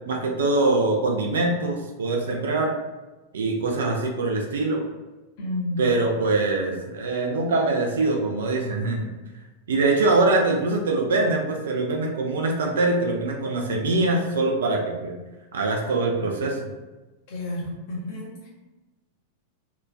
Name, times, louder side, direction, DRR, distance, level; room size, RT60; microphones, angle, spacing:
voice 1, 0.1-2.8 3.3-4.8 5.8-9.1 9.7-15.2 15.5-16.6, right 2 dB, 65° right, 2 dB, 0.4 m, -23 dB
voice 2, 5.4-5.8 17.3-18.5, left 1 dB, 50° left, -4 dB, 0.9 m, -31 dB
3.0 x 2.3 x 2.2 m, 1.2 s
figure-of-eight pair, 90°, 0 cm